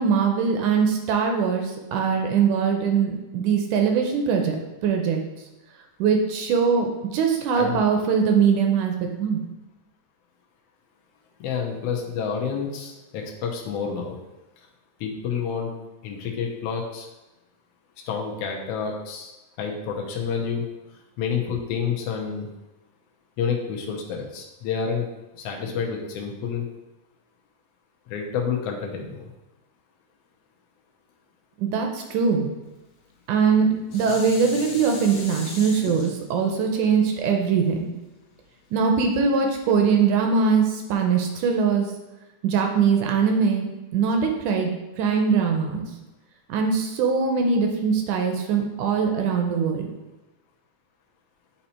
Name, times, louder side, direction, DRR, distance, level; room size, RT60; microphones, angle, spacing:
voice 1, 0.0-5.2 6.0-9.4 31.6-32.5 33.3-33.7 33.9-37.9 38.7-41.9 42.4-44.7 45.0-45.9 46.5-49.9, right 6 dB, 80° right, 3 dB, 2.0 m, -22 dB
voice 2, 7.5-7.9 11.4-14.2 15.0-15.7 16.0-17.1 18.1-19.3 19.6-20.6 21.2-22.5 23.4-25.1 25.4-26.6 28.1-29.3, left 6 dB, 90° left, 0 dB, 1.3 m, -29 dB
Dishes pots and pans, 33.3-38.6 39.1-39.2, left 3 dB, 60° left, 1.5 m, -39 dB
8.0 x 2.8 x 4.2 m, 1.0 s
omnidirectional pair, 3.8 m